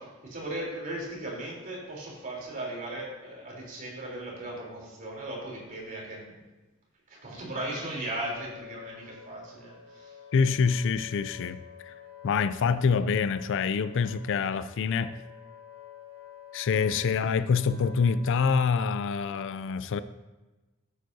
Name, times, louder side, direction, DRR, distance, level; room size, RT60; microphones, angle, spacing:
voice 1, 0.0-6.4 7.1-10.2, right 1 dB, 40° right, -3 dB, 3.5 m, -37 dB
Wind instrument woodwind instrument, 7.7-18.6, left 8 dB, 40° left, 2.9 m, -50 dB
voice 2, 10.3-11.9 12.2-15.2 16.5-20.0, left 5 dB, 60° left, 14 dB, 0.4 m, -26 dB
13.5 x 9.3 x 2.7 m, 1.1 s
head